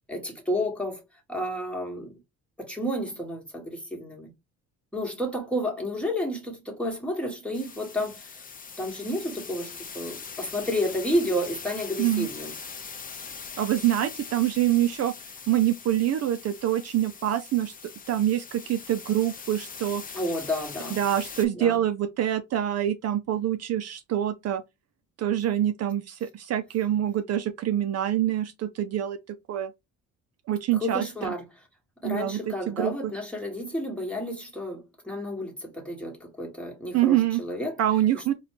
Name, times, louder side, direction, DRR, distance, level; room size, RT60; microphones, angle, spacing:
voice 1, 0.1-1.0 1.3-2.2 2.6-4.3 4.9-8.3 8.8-12.5 20.1-21.0 21.5-21.8 30.7-31.4 32.0-37.8 38.1-38.3, equal, 5° left, 1.4 m, -31 dB
sound 1, 7.5-21.4, left 5 dB, 30° left, 0.6 m, -41 dB
voice 2, 13.6-15.1 15.5-20.2 20.9-24.6 25.2-29.7 30.5-31.3 32.0-33.1 36.9-37.4 37.8-38.3, right 12 dB, 60° right, 0.4 m, -26 dB
4.0 x 2.3 x 2.9 m
cardioid pair, 90°, 30 cm